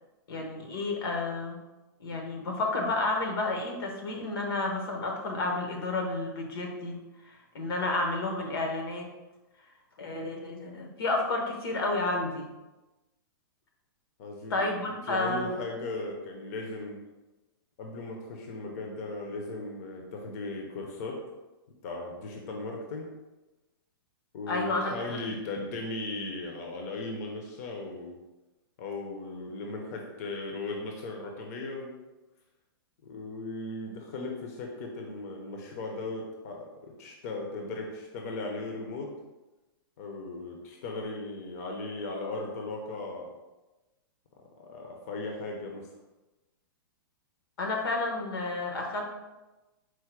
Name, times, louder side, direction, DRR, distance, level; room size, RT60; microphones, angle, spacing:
voice 1, 0.3-1.6 2.0-9.1 10.0-12.5 14.5-15.6 24.5-25.2 47.6-49.1, left 2 dB, 85° left, 2 dB, 1.0 m, -31 dB
voice 2, 14.2-14.6 15.1-17.0 17.8-21.2 21.8-23.1 24.3-28.1 28.8-32.0 33.0-39.1 40.0-43.3 44.6-45.9, left 2 dB, 45° left, 1 dB, 0.6 m, -37 dB
4.5 x 2.1 x 4.5 m, 1.1 s
hypercardioid pair, 160°, 12 cm